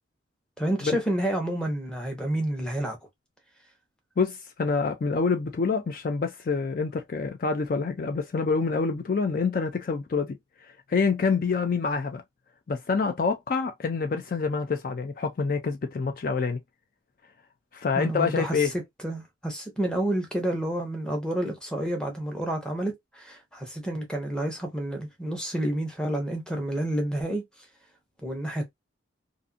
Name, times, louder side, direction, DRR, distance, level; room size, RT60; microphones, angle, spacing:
voice 1, 0.6-3.0 17.9-18.7 19.0-27.4 28.2-28.7, right 1 dB, 5° left, 0.8 m, -29 dB
voice 2, 4.2-10.4 10.6-12.2 12.7-16.6 17.7-18.7, left 4 dB, 45° left, 0.3 m, -27 dB
2.6 x 2.5 x 2.4 m
head